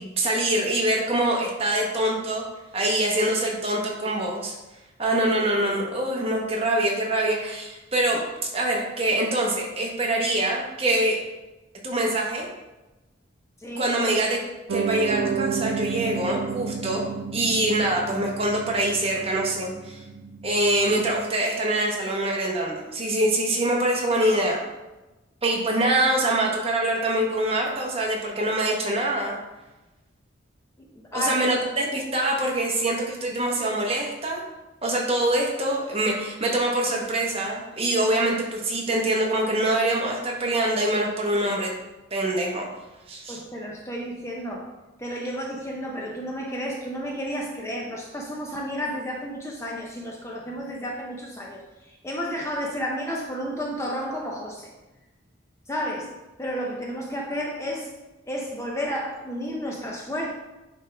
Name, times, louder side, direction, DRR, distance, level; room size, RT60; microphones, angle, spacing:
voice 1, 0.0-2.4 2.7-4.5 5.0-8.2 8.5-11.2 11.8-12.5 13.8-14.4 14.7-17.0 17.3-20.0 20.4-24.6 25.4-29.4 31.1-34.4 34.8-41.7 42.1-42.7 43.1-43.4, right 1 dB, 30° right, -1 dB, 1.0 m, -24 dB
voice 2, 13.6-13.9 30.8-30.9 31.1-31.3 31.8-32.0 43.3-44.7 45.0-54.7 55.7-56.1 56.4-57.9 58.3-60.3, equal, 15° left, -1 dB, 0.6 m, -32 dB
Piano, 14.7-21.2, right 6 dB, 75° right, 0.4 m, -31 dB
9.3 x 3.4 x 3.4 m, 1.1 s
head